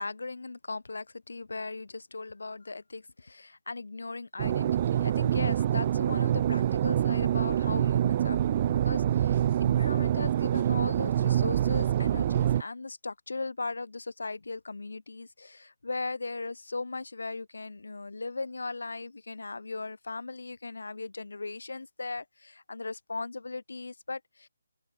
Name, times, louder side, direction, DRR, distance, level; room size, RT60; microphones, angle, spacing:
voice 1, 0.0-24.5, left 3 dB, 85° left, 5.7 m, -38 dB
sound 1, 4.4-12.6, right 11 dB, 20° right, 0.4 m, -26 dB
open air
hypercardioid pair, 175°, 0 cm